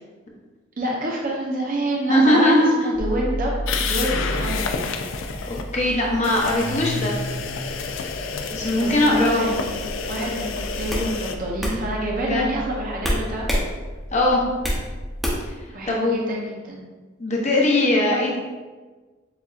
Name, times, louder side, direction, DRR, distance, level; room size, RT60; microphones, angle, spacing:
voice 1, 0.8-4.9 8.5-9.8 10.1-13.6 15.7-16.9, right 1 dB, 45° right, -2 dB, 0.6 m, -28 dB
voice 2, 2.1-2.7 5.5-7.2 8.5-9.4 12.2-12.5 14.1-14.4 15.9-16.2 17.2-18.4, left 1 dB, 35° left, -2 dB, 0.8 m, -20 dB
sound 1, 2.9-15.5, right 1 dB, 80° right, 1.4 m, -34 dB
sound 2, 3.7-5.6 6.2-11.4, left 5 dB, 75° left, 0.4 m, -29 dB
sound 3, 10.9-11.1 11.6-11.8 13.0-13.7 14.0-14.8 15.2-15.6, equal, ahead, 0.7 m, -24 dB
7.0 x 2.7 x 2.4 m, 1.3 s
head